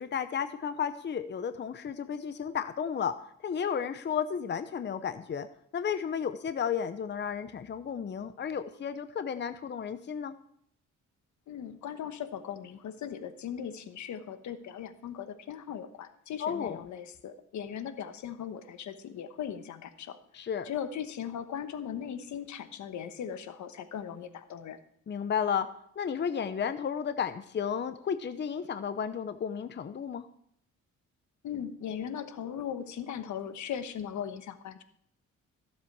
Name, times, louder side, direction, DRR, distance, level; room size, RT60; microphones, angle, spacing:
voice 1, 0.0-3.1 3.4-5.5 5.7-10.3 16.4-16.8 20.3-20.7 25.1-25.7 26.0-30.2, left 7 dB, 35° left, 10 dB, 0.7 m, -33 dB
voice 2, 11.5-20.2 20.6-24.8 31.4-34.8, left 8 dB, 70° left, 10 dB, 1.2 m, -38 dB
15.0 x 7.5 x 4.7 m, 0.69 s
cardioid pair, 90°, 30 cm